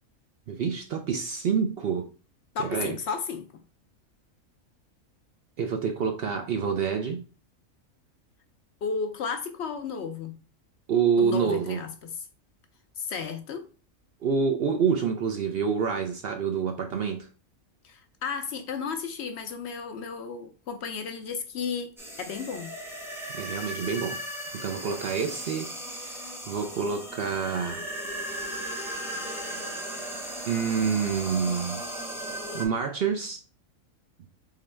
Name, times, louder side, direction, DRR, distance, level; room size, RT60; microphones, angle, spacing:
voice 1, 0.5-2.1 2.6-3.0 5.6-7.2 10.9-11.8 14.2-17.3 23.3-24.2 24.6-27.8 30.5-31.8 32.5-33.4, right 6 dB, 60° right, 0.6 m, -27 dB
voice 2, 2.5-3.5 8.8-10.4 11.2-12.3 13.0-13.7 17.8-22.7, left 5 dB, 65° left, 0.7 m, -33 dB
sound 1, 22.0-32.7, right 1 dB, ahead, 0.7 m, -36 dB
3.8 x 3.5 x 3.2 m
omnidirectional pair, 1.4 m